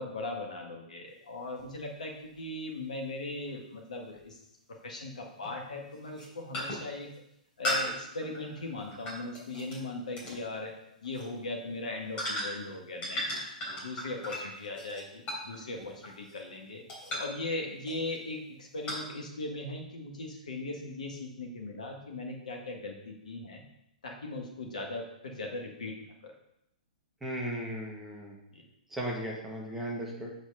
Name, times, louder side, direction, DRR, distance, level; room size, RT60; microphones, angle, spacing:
voice 1, 0.0-4.4 4.8-7.1 7.6-10.7 11.0-13.2 13.8-16.8 17.2-23.6 24.0-26.3 28.5-28.6, left 2 dB, 60° left, 2 dB, 1.8 m, -39 dB
sound 1, 1.6-1.7 4.2-4.3 5.4-5.6 6.0-6.3 6.5-6.9 7.6-9.8 10.2-10.4 11.0-11.3 12.2-12.7 13.0-16.5 16.9-17.4 17.9-18.2 18.9-19.0, equal, 25° left, 3.5 m, -36 dB
voice 2, 27.2-28.4 28.9-30.3, right 1 dB, 5° right, -3 dB, 1.9 m, -36 dB
8.4 x 5.1 x 5.5 m, 0.82 s
figure-of-eight pair, 110°, 4 cm